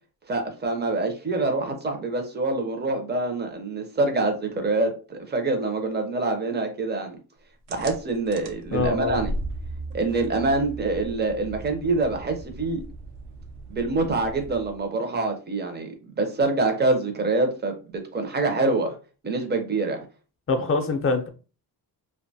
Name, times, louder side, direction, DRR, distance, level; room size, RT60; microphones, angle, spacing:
voice 1, 0.3-7.2 7.7-9.3 9.9-12.8 13.7-17.7 18.1-18.9 19.2-20.0, right 3 dB, 25° right, 0.6 m, -25 dB
sound 1, 7.7-14.9, right 2 dB, 70° right, 0.6 m, -37 dB
voice 2, 8.7-9.2 20.5-21.3, left 3 dB, 35° left, 0.5 m, -24 dB
2.5 x 2.2 x 2.7 m
cardioid pair, 120°, 40 cm